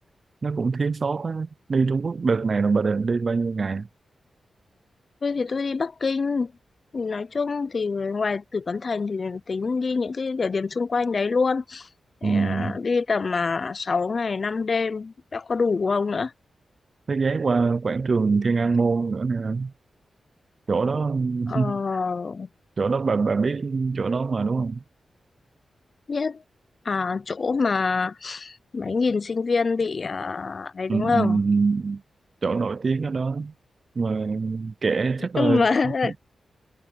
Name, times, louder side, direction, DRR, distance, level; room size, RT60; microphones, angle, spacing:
voice 1, 0.4-3.9 12.2-12.8 17.1-19.7 20.7-21.8 22.8-24.8 30.9-32.0 32.4-33.5 34.0-35.7 36.0-36.2, right 4 dB, 45° right, 0.5 m, -24 dB
voice 2, 5.2-6.5 6.9-11.9 12.2-16.3 21.5-22.5 26.1-26.4 26.8-31.4 35.4-36.2, left 4 dB, 45° left, 0.6 m, -25 dB
wide cardioid pair, 100°, 0 cm